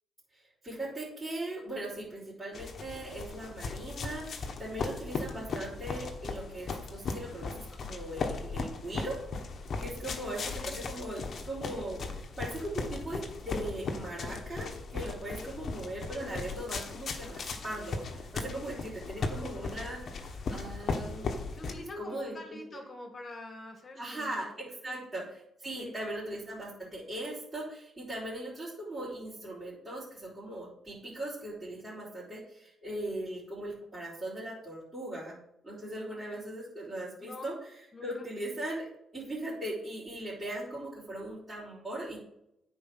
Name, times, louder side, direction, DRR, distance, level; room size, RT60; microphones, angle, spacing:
voice 1, 0.3-9.2 9.8-21.3 22.0-22.8 24.0-25.2 25.6-35.4 35.6-37.5 38.0-38.9 39.1-42.2, right 1 dB, 20° right, -10 dB, 3.9 m, -39 dB
sound 1, 2.5-21.7, left 4 dB, 50° left, 1.3 m, -37 dB
voice 2, 10.0-10.8 15.2-15.6 19.2-20.1 21.3-24.5 24.8-25.1 25.8-26.0 35.8-36.4 37.2-37.5 37.9-38.3, left 2 dB, 35° left, 4 dB, 2.0 m, -47 dB
9.4 x 4.7 x 6.2 m, 0.80 s
cardioid pair, 90°, 0 cm